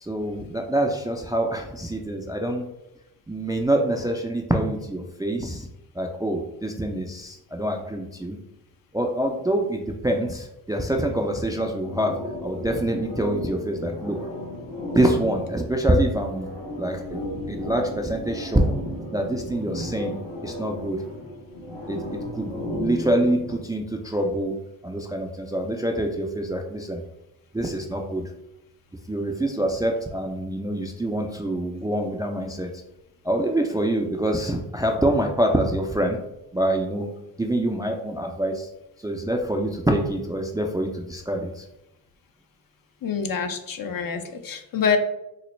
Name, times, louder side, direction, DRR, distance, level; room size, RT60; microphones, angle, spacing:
voice 1, 0.0-2.6 3.3-5.7 6.0-8.4 8.9-14.2 15.0-18.7 19.1-21.0 21.9-22.0 22.3-24.6 24.8-27.0 27.5-28.3 29.1-32.7 33.2-36.2 36.5-37.1 37.4-38.7 39.0-41.6, right 1 dB, 10° right, 3 dB, 0.3 m, -25 dB
sound 1, 11.8-23.6, left 1 dB, 70° left, 1.1 m, -34 dB
voice 2, 43.0-45.0, left 6 dB, 50° left, 7 dB, 0.5 m, -26 dB
4.0 x 2.1 x 3.1 m, 0.89 s
supercardioid pair, 45°, 44 cm